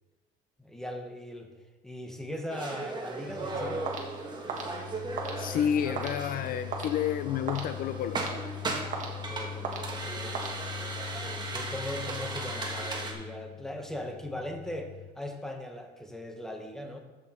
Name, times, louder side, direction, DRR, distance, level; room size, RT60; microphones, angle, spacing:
voice 1, 0.6-1.5 1.8-3.9 9.2-10.7 11.1-17.0, left 1 dB, ahead, 4 dB, 1.2 m, -39 dB
sound 1, 2.5-13.1, right 3 dB, 25° right, 1.6 m, -37 dB
sound 2, 3.3-15.1, left 10 dB, 30° left, 0.9 m, -42 dB
sound 3, 3.9-11.1, right 4 dB, 40° right, 1.7 m, -40 dB
voice 2, 5.4-8.2, left 9 dB, 50° left, 10 dB, 0.5 m, -30 dB
14.0 x 6.3 x 4.5 m, 1.3 s
cardioid pair, 140°, 19 cm